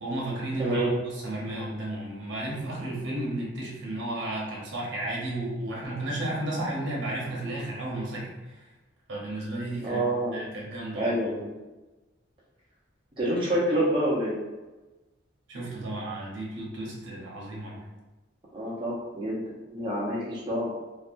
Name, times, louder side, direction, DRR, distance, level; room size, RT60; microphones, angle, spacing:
voice 1, 0.0-8.6 9.1-10.0 10.3-11.1 15.5-17.9, right 1 dB, 75° right, -3 dB, 0.8 m, -33 dB
voice 2, 0.6-0.9 9.8-10.5 10.9-11.5 13.2-14.4 18.5-20.7, right 1 dB, 25° right, -7 dB, 0.7 m, -27 dB
2.7 x 2.1 x 2.5 m, 1.1 s
head